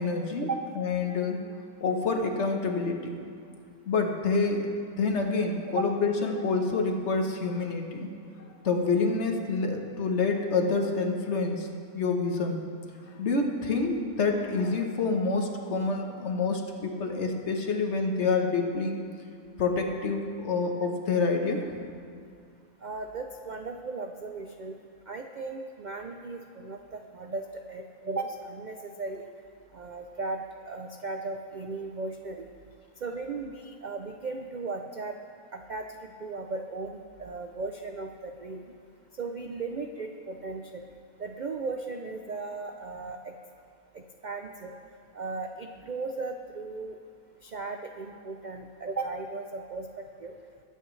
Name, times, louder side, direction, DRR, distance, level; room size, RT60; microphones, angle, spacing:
voice 1, 0.0-0.5 0.8-1.5 1.8-3.1 3.9-8.2 8.4-11.7 11.9-12.6 13.2-19.0 19.6-21.6, left 4 dB, 55° left, 3 dB, 1.3 m, -27 dB
voice 2, 22.8-24.8 25.1-29.3 29.7-32.5 33.0-35.2 35.5-35.9 36.2-38.6 39.2-40.8 41.2-43.3 43.9-44.7 45.1-47.0 47.4-50.3, right 3 dB, 85° right, 4 dB, 0.4 m, -36 dB
20.5 x 8.9 x 3.2 m, 2.3 s
omnidirectional pair, 1.5 m